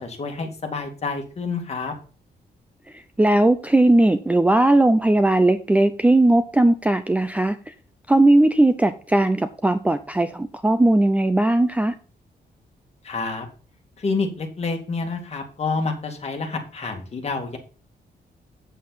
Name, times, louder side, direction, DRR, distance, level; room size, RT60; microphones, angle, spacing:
voice 1, 0.0-1.9 13.0-13.5 14.0-17.6, left 4 dB, 35° left, 2.1 m, -28 dB
voice 2, 2.9-7.7 8.1-12.0, right 1 dB, 10° right, 0.5 m, -18 dB
8.5 x 7.6 x 4.0 m
wide cardioid pair, 145°, 17 cm